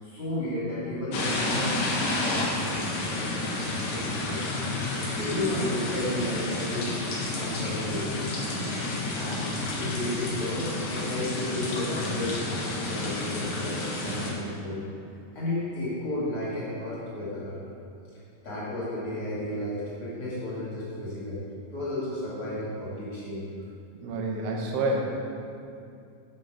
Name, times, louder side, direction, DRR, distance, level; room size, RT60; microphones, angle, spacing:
voice 1, 0.0-1.8 2.2-2.5 3.0-6.9 7.2-8.1 9.1-14.8 15.3-17.6 18.4-21.4 21.7-23.5, left 1 dB, 40° left, -9 dB, 2.4 m, -33 dB
sound 1, 1.1-14.3, left 2 dB, 75° left, 1.1 m, -30 dB
voice 2, 24.0-25.0, right 2 dB, 80° right, 0 dB, 1.4 m, -28 dB
7.5 x 6.8 x 5.1 m, 2.5 s
omnidirectional pair, 4.4 m